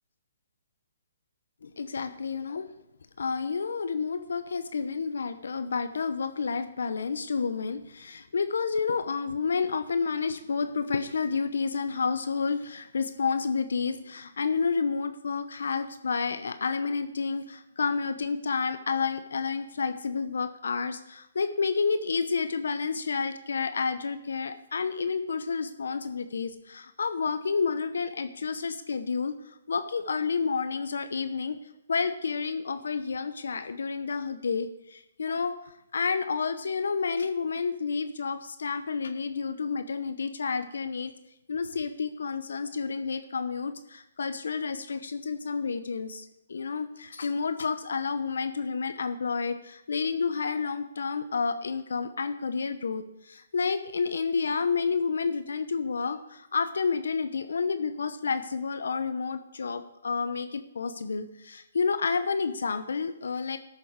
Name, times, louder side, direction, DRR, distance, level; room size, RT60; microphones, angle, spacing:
voice 1, 1.6-2.7 3.2-31.6 31.9-41.1 41.5-63.6, left 5 dB, 75° left, 10 dB, 0.8 m, -30 dB
13.0 x 6.9 x 4.7 m, 0.83 s
hypercardioid pair, 140°, 0 cm